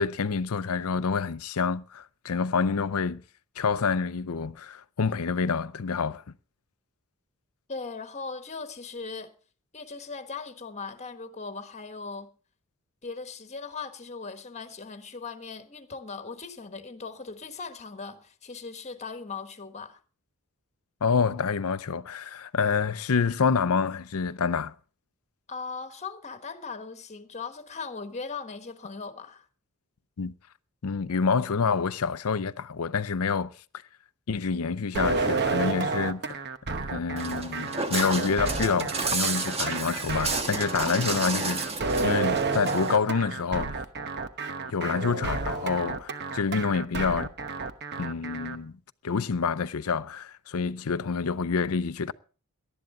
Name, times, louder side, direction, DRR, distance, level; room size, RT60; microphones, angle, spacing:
voice 1, 0.0-3.2 3.6-6.2 21.0-24.7 30.2-30.3 30.8-33.5 34.3-36.4 36.7-41.6 42.0-43.8 44.7-47.3 48.0-48.7 49.0-52.1, left 5 dB, 75° left, 0.6 m, -27 dB
voice 2, 7.7-9.3 9.7-12.3 13.0-20.0 25.5-29.4, left 4 dB, 30° left, 1.3 m, -39 dB
sound 1, 34.9-48.6, right 4 dB, 50° right, 1.0 m, -30 dB
Walk footsteps, 37.2-43.0, right 3 dB, 30° right, 1.4 m, -31 dB
18.5 x 12.0 x 3.7 m
head